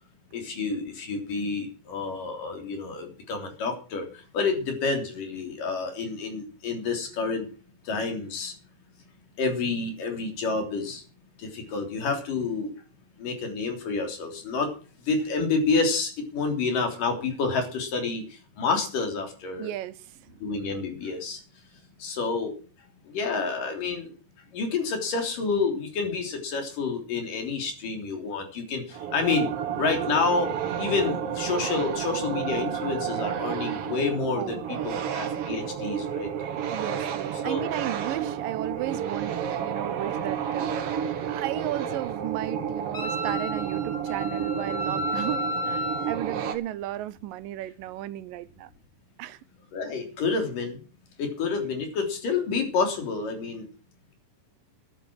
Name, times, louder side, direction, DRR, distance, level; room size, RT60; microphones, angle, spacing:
voice 1, 0.3-7.5 7.8-8.5 9.4-11.0 11.4-12.7 13.2-14.7 15.1-19.7 20.4-21.4 22.0-22.5 23.0-24.1 24.5-29.5 29.8-30.5 30.8-36.3 37.4-37.6 49.7-50.8 51.2-53.7, left 4 dB, 70° left, 5.0 m, -29 dB
voice 2, 19.6-20.3 34.4-35.0 36.7-48.7 49.2-49.4, right 13 dB, 80° right, 2.5 m, -35 dB
sound 1, 28.9-46.6, right 8 dB, 55° right, 1.9 m, -31 dB
Wind instrument woodwind instrument, 42.9-46.2, left 1 dB, 20° left, 3.2 m, -32 dB
13.5 x 10.0 x 6.3 m
omnidirectional pair, 3.9 m